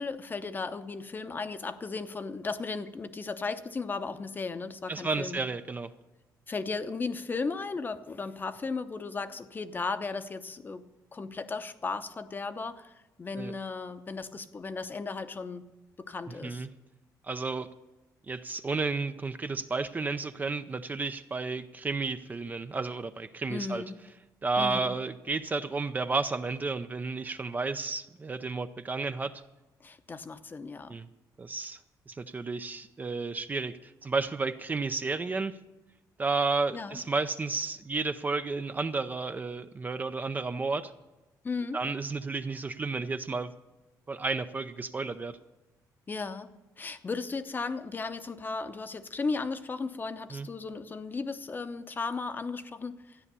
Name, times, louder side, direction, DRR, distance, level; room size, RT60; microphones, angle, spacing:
voice 1, 0.0-5.4 6.5-10.8 11.1-15.7 16.0-16.7 23.5-24.0 24.6-25.0 29.8-31.0 36.7-37.0 41.4-41.8 46.1-46.5 46.8-53.2, left 4 dB, 30° left, 11 dB, 0.8 m, -35 dB
voice 2, 4.9-5.9 13.4-13.5 16.4-16.7 17.2-17.7 18.3-23.8 24.4-29.4 30.9-31.1 31.4-31.8 32.1-35.6 36.2-40.9 41.7-43.5 44.1-45.3 50.3-50.5, right 3 dB, 25° right, 10 dB, 0.5 m, -32 dB
13.5 x 9.8 x 6.9 m, 1.1 s
cardioid pair, 125°, 7 cm